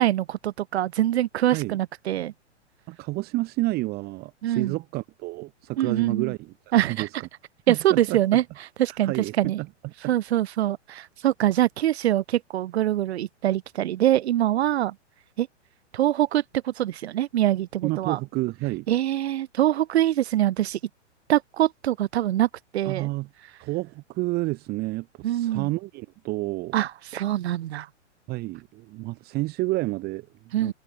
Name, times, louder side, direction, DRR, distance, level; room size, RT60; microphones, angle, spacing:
voice 1, 0.0-2.3 4.4-4.8 5.8-6.3 6.7-7.1 7.7-8.4 8.8-9.6 10.1-15.0 15.4-15.5 15.9-18.2 18.9-20.8 21.3-23.1 25.2-25.7 26.7-27.9 30.5-30.7, right 12 dB, 60° right, 0.6 m, -24 dB
voice 2, 2.9-6.5 7.0-7.1 7.7-8.4 8.9-9.7 17.8-18.9 22.8-23.3 23.6-26.7 28.3-30.7, right 21 dB, 25° right, 1.0 m, -30 dB
figure-of-eight pair, 110°, 36 cm